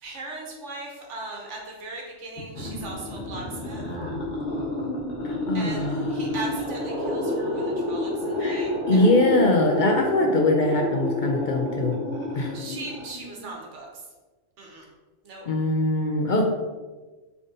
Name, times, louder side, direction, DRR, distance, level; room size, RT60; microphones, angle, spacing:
voice 1, 0.0-3.8 5.5-9.1 12.5-14.0 14.6-14.8 15.2-15.5, right 2 dB, 80° right, -1 dB, 1.3 m, -38 dB
sound 1, 2.4-13.5, left 1 dB, 40° left, 1.5 m, -29 dB
voice 2, 5.2-6.1 8.4-12.0 12.3-12.6 15.5-16.4, left 2 dB, 55° left, 1 dB, 0.6 m, -23 dB
3.9 x 3.5 x 3.7 m, 1.2 s
omnidirectional pair, 1.2 m